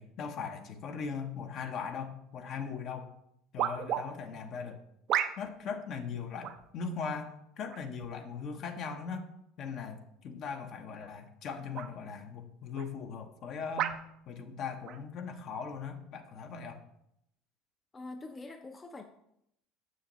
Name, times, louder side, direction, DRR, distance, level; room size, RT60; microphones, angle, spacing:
voice 1, 0.0-3.1 3.5-4.8 5.4-9.3 9.6-13.9 14.3-16.8, left 5 dB, 55° left, 6 dB, 0.8 m, -39 dB
sound 1, 2.6-2.7 3.6-4.0 5.1-5.6 6.4-6.7 7.7-8.1 8.9-9.0 10.9-11.2 11.7-11.9 12.7-12.9 13.8-14.0 14.8-15.0, right 10 dB, 55° right, 0.5 m, -33 dB
voice 2, 17.9-19.0, left 2 dB, 25° left, 6 dB, 0.5 m, -44 dB
6.6 x 6.4 x 3.0 m, 0.77 s
hypercardioid pair, 80°, 0 cm